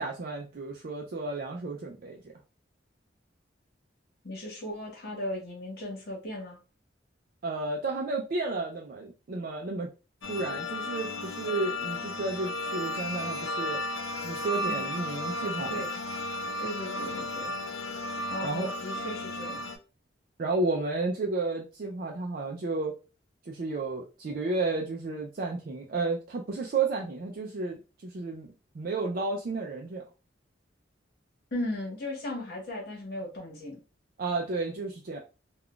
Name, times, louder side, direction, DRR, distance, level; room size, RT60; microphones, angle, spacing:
voice 1, 0.0-2.3 7.4-9.9 10.3-13.8 14.2-15.9 18.4-18.7 20.4-22.9 23.4-28.5 28.7-30.0 34.2-35.2, right 3 dB, 50° right, 1 dB, 0.4 m, -32 dB
voice 2, 4.2-6.6 14.6-14.9 15.7-15.9 16.6-17.5 18.3-19.7 31.5-33.8, left 1 dB, 60° left, -1 dB, 1.3 m, -36 dB
sound 1, 10.2-19.8, left 1 dB, 80° left, 0.6 m, -34 dB
3.6 x 2.3 x 2.3 m, 0.32 s
head